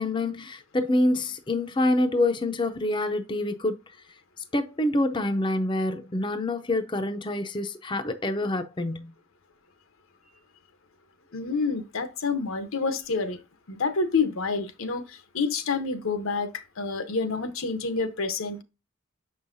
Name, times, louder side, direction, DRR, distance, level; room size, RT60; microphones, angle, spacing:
voice 1, 0.0-3.8 4.5-9.1, left 1 dB, 25° left, 0.5 m, -26 dB
voice 2, 11.3-13.4 13.7-18.6, left 4 dB, 80° left, 0.9 m, -28 dB
6.6 x 5.4 x 2.6 m
head